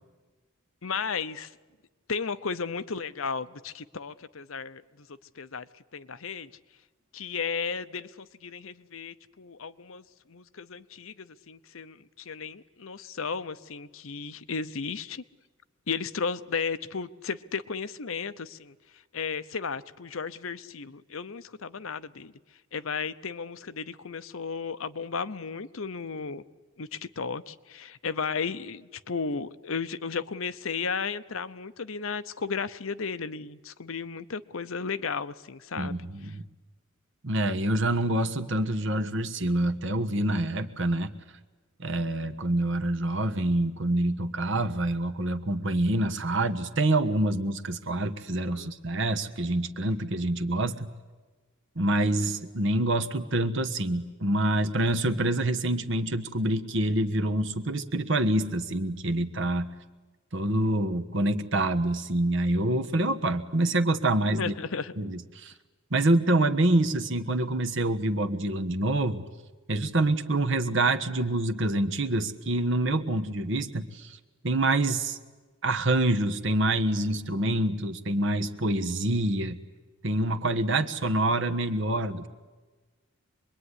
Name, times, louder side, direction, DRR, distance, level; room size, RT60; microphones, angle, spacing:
voice 1, 0.8-1.5 2.1-5.1 5.3-6.5 7.1-15.2 15.9-22.3 22.7-26.4 26.8-36.0 36.2-36.3 48.5-48.7 64.4-64.9 77.3-77.6, left 5 dB, 75° left, 13 dB, 0.8 m, -34 dB
voice 2, 35.8-36.4 37.2-41.1 41.8-50.9 51.7-59.7 60.3-64.5 65.0-65.5 65.9-69.2 69.7-74.2 74.4-75.2 75.6-79.6 80.0-82.3, right 1 dB, 60° right, 8 dB, 1.4 m, -26 dB
25.5 x 21.5 x 9.9 m, 1.3 s
head